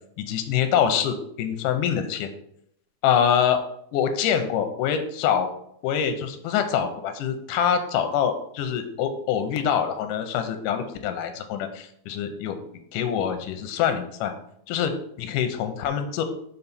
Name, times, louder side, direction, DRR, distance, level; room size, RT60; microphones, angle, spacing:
voice 1, 0.2-2.3 3.0-3.6 3.9-5.5 5.8-12.6 12.9-14.3 14.7-14.9 15.2-16.2, left 8 dB, 85° left, 7 dB, 2.2 m, -25 dB
5.8 x 5.3 x 4.1 m, 0.72 s
omnidirectional pair, 3.7 m